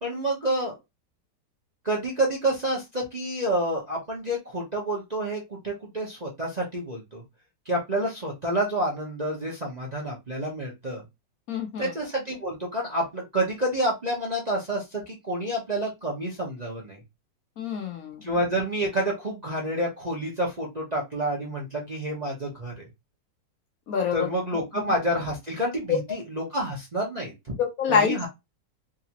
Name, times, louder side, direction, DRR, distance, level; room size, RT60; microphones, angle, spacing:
voice 1, 0.0-0.7 1.8-7.2 7.7-11.0 11.8-17.0 18.2-22.7 24.1-27.3 27.9-28.3, right 1 dB, 30° right, 0.9 m, -28 dB
voice 2, 11.5-11.9 17.6-18.3 23.9-24.3 24.7-24.8 25.9-26.2 27.5-28.2, left 6 dB, 60° left, 1.1 m, -26 dB
3.8 x 2.6 x 2.9 m
omnidirectional pair, 1.9 m